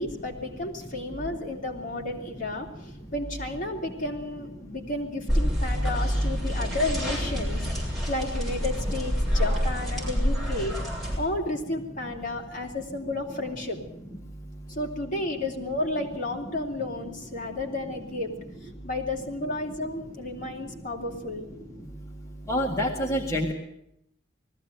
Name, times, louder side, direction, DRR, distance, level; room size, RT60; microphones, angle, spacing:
voice 1, 0.0-10.8 11.2-13.8 14.7-18.3 18.8-21.5, left 2 dB, 45° left, 0 dB, 3.3 m, -32 dB
sound 1, 5.3-11.2, equal, ahead, 6.7 m, -27 dB
voice 2, 22.5-23.5, equal, 15° left, 0 dB, 1.8 m, -26 dB
19.5 x 15.0 x 9.1 m, 0.78 s
head